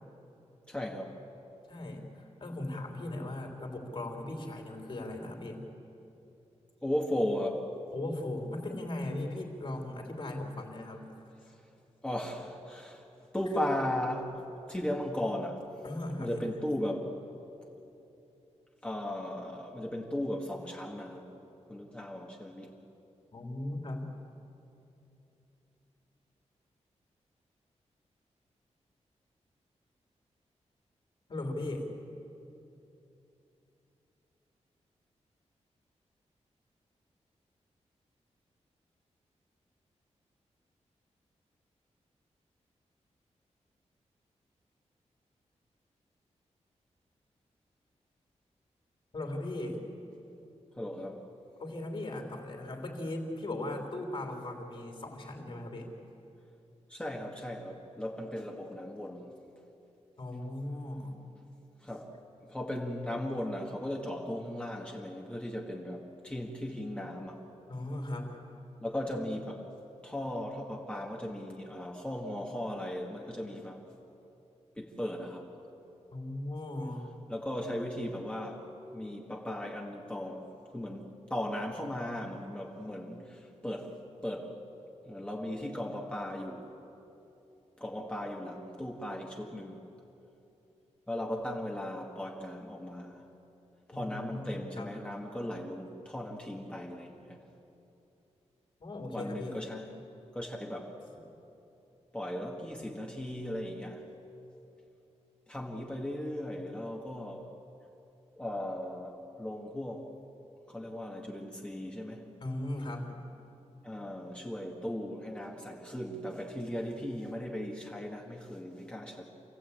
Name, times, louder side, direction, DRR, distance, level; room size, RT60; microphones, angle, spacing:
voice 1, 0.7-1.2 6.8-7.7 12.0-13.0 13.3-15.6 16.2-17.1 18.8-21.3 21.7-22.7 50.8-51.2 56.9-59.3 61.8-62.1 62.5-67.5 68.8-69.6 70.0-73.8 74.8-75.5 77.3-78.7 78.9-80.5 80.7-83.9 84.2-84.6 85.0-86.7 87.8-89.8 91.1-93.2 93.9-97.4 99.1-99.9 100.3-101.0 102.1-104.0 105.5-107.5 108.4-110.1 110.7-112.2 113.8-119.2, left 1 dB, 10° left, -1 dB, 1.7 m, -37 dB
voice 2, 1.7-5.7 7.9-11.1 13.5-13.7 15.8-16.4 23.3-24.1 31.3-31.9 49.1-49.8 51.6-55.9 60.2-61.2 67.7-68.4 76.1-77.1 93.9-95.0 98.8-99.6 112.4-113.1, left 1 dB, 45° left, 2 dB, 3.8 m, -38 dB
28.0 x 17.0 x 8.7 m, 2.9 s
wide cardioid pair, 155°, 12 cm